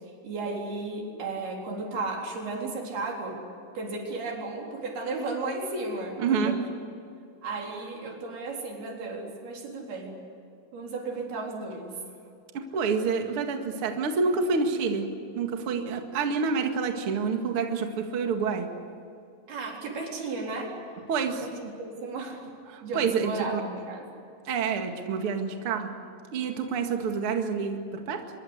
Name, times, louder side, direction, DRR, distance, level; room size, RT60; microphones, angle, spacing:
voice 1, 0.2-3.4 3.7-6.6 7.4-10.2 10.7-12.0 19.5-20.8 21.4-22.5 22.8-24.1, right 3 dB, 90° right, 0 dB, 6.0 m, -34 dB
voice 2, 6.2-6.6 12.5-15.1 15.4-18.7 21.1-21.7 22.7-23.6 24.5-25.9 26.3-28.2, right 5 dB, 45° right, 4 dB, 2.4 m, -28 dB
25.0 x 22.5 x 8.2 m, 2.6 s
omnidirectional pair, 4.3 m